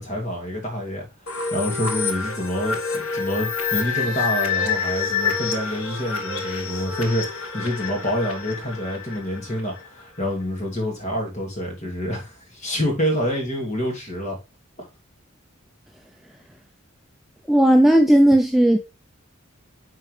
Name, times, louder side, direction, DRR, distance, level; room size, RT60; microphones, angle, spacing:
voice 1, 0.0-14.4, equal, 35° left, 2.5 m, -27 dB
sound 1, 1.3-9.9, left 5 dB, 85° left, 1.4 m, -27 dB
voice 2, 17.5-18.8, right 1 dB, ahead, 0.4 m, -15 dB
9.4 x 4.4 x 3.2 m
head